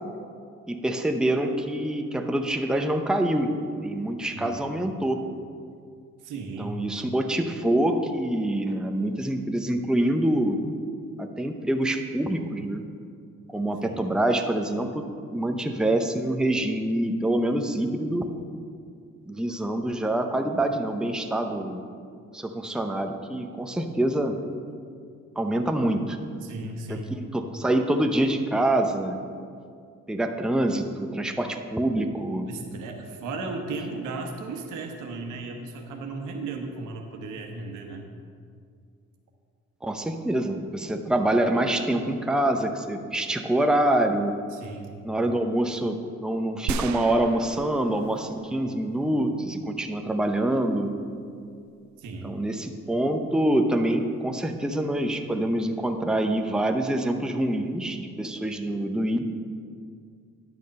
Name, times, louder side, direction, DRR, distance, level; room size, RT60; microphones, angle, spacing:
voice 1, 0.7-5.2 6.6-10.6 11.2-12.9 13.5-15.0 15.3-18.3 19.2-21.8 22.3-24.4 25.4-26.4 26.9-29.2 30.1-32.5 33.4-33.5 39.8-44.4 45.0-50.9 52.2-59.2, right 1 dB, ahead, 4 dB, 0.7 m, -26 dB
voice 2, 6.2-6.8 13.8-14.0 26.4-27.1 32.5-38.1 44.5-44.9 52.0-52.4, right 3 dB, 90° right, 3 dB, 1.2 m, -35 dB
sound 1, 46.7-48.6 48.9-49.0, right 7 dB, 70° right, 0.4 m, -34 dB
10.5 x 6.4 x 5.3 m, 2.2 s
cardioid pair, 90°, 30 cm